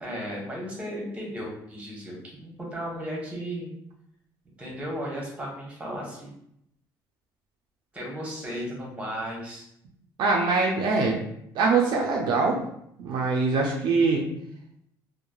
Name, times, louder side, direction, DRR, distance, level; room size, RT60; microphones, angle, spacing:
voice 1, 0.0-3.7 4.6-6.3 7.9-9.7, equal, 15° right, -2 dB, 1.0 m, -35 dB
voice 2, 10.2-11.2 11.5-12.6 13.0-14.2, right 4 dB, 65° right, -1 dB, 0.5 m, -23 dB
2.9 x 2.1 x 2.3 m, 0.74 s
cardioid pair, 105°, 8 cm